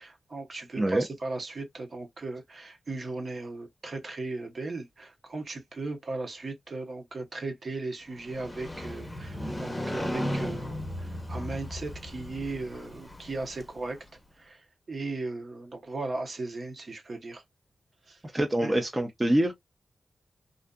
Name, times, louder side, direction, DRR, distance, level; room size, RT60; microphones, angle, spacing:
voice 1, 0.0-14.0 14.4-17.4 18.1-18.2 18.6-18.7, right 3 dB, 50° right, 0.9 m, -37 dB
Motorcycle, 8.1-14.1, left 1 dB, 15° left, 0.8 m, -36 dB
voice 2, 18.3-19.5, right 1 dB, 20° right, 0.6 m, -25 dB
2.6 x 2.4 x 2.2 m
cardioid pair, 80°, 0 cm